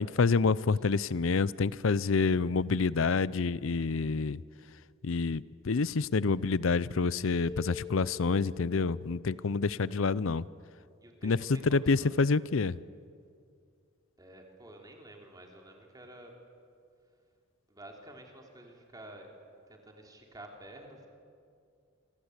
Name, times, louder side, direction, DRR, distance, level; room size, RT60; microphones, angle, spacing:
voice 1, 0.0-4.4 5.0-10.4 11.2-12.8, left 4 dB, 70° left, 19 dB, 0.6 m, -28 dB
sound 1, 7.5-11.0, left 6 dB, 15° left, 1.1 m, -47 dB
voice 2, 9.3-9.7 11.0-12.2 14.2-16.4 17.7-19.3 19.7-21.1, right 1 dB, 20° right, 1 dB, 3.5 m, -51 dB
26.5 x 23.0 x 8.1 m, 2.3 s
head